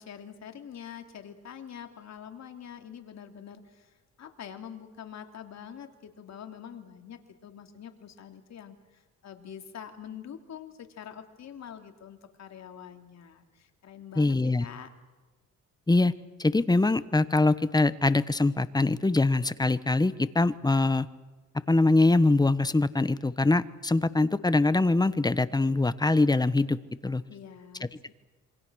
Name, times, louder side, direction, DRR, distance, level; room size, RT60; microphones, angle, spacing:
voice 1, 0.0-14.3 14.6-14.9 27.3-28.1, left 8 dB, 60° left, 5 dB, 3.0 m, -45 dB
voice 2, 14.2-14.6 15.9-16.1 16.4-21.1 21.7-26.8 27.0-27.2, left 2 dB, 15° left, 14 dB, 1.1 m, -23 dB
27.5 x 24.0 x 6.4 m, 1.2 s
cardioid pair, 90°, 30 cm